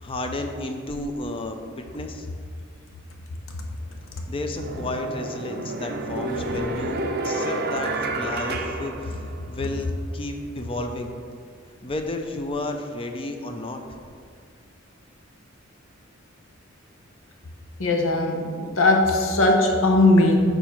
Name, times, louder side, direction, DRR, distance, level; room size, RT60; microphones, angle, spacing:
voice 1, 0.0-2.3 4.3-11.1 11.8-13.8, left 2 dB, 25° left, 5 dB, 0.5 m, -32 dB
sound 1, 3.8-3.9 4.5-9.7, right 2 dB, 50° right, 0.5 m, -30 dB
voice 2, 17.8-20.4, left 2 dB, 80° left, 2 dB, 0.8 m, -19 dB
4.7 x 3.9 x 5.7 m, 2.1 s
head